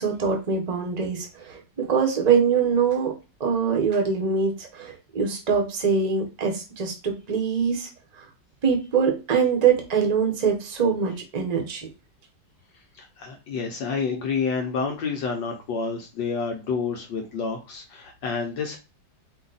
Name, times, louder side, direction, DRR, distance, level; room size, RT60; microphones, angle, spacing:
voice 1, 0.0-3.1 3.4-7.9 8.6-11.9, right 6 dB, 30° right, 2 dB, 0.9 m, -23 dB
voice 2, 13.0-18.8, left 5 dB, 75° left, 2 dB, 1.5 m, -29 dB
5.0 x 2.4 x 4.0 m, 0.30 s
omnidirectional pair, 2.1 m